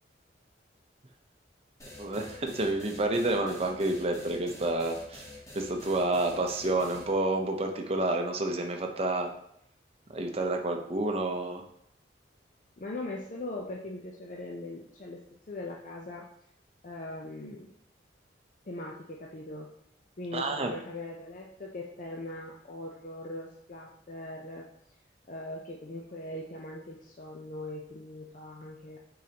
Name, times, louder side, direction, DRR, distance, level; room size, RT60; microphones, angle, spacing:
sound 1, 1.8-7.1, left 2 dB, 15° left, 1.1 m, -47 dB
voice 1, 2.0-5.3 5.5-9.3 10.1-11.6 20.3-20.7, right 2 dB, 35° right, 3 dB, 0.6 m, -29 dB
voice 2, 12.8-15.2 15.5-16.2 16.8-17.7 18.7-19.7 20.2-24.6 25.3-29.0, left 2 dB, 45° left, -2 dB, 0.6 m, -40 dB
8.4 x 3.9 x 2.9 m, 0.72 s
head